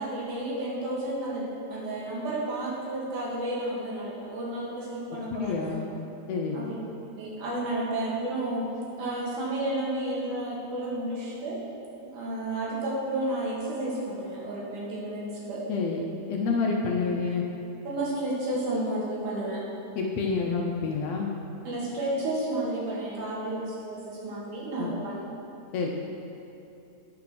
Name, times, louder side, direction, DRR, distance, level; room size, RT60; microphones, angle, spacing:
voice 1, 0.0-5.7 6.5-6.7 7.2-8.6 9.0-11.6 12.0-15.6 17.8-19.6 21.6-25.2, right 1 dB, 80° right, -5 dB, 3.4 m, -31 dB
voice 2, 5.3-5.9 6.3-6.6 15.7-16.0 16.3-17.4 20.0-21.3 24.8-24.9 25.7-25.9, left 4 dB, 75° left, 0 dB, 1.6 m, -28 dB
10.0 x 5.8 x 6.0 m, 2.9 s
omnidirectional pair, 3.5 m